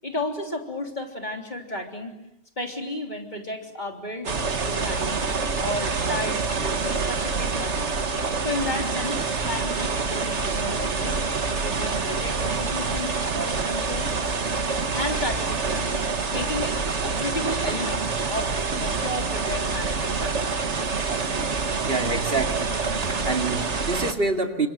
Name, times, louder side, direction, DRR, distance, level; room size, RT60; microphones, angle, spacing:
voice 1, 0.0-2.1 2.6-4.4 4.6-5.2 5.6-7.9 8.4-11.2 11.6-14.1 14.9-16.0 16.3-16.8 17.0-20.6, left 1 dB, 40° left, 3 dB, 3.7 m, -33 dB
sound 1, 4.3-24.1, right 4 dB, 85° right, 1.9 m, -26 dB
voice 2, 21.8-24.7, right 3 dB, 55° right, 4 dB, 2.6 m, -27 dB
29.5 x 26.0 x 7.8 m, 0.85 s
omnidirectional pair, 1.2 m